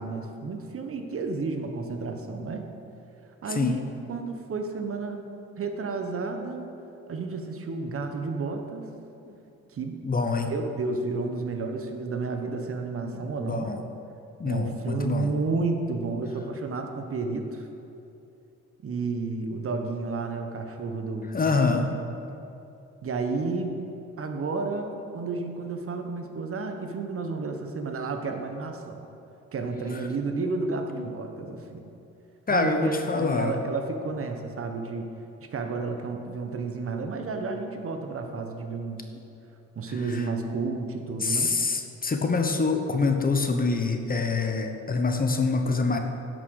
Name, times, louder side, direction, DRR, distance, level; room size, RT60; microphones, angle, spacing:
voice 1, 0.0-2.7 3.4-5.2 5.6-6.7 7.1-8.9 9.7-10.0 10.5-13.7 14.4-17.7 18.8-22.0 23.0-23.8 24.2-29.0 29.5-31.9 32.5-35.1 35.4-39.0 39.8-41.5, right 3 dB, 45° right, 5 dB, 1.1 m, -31 dB
voice 2, 10.0-10.5 13.1-13.8 14.4-15.3 21.3-21.9 31.0-31.1 32.5-33.5 40.1-40.2 41.2-46.0, left 4 dB, 30° left, 5 dB, 1.0 m, -25 dB
11.0 x 6.2 x 6.4 m, 2.8 s
cardioid pair, 90°, 30 cm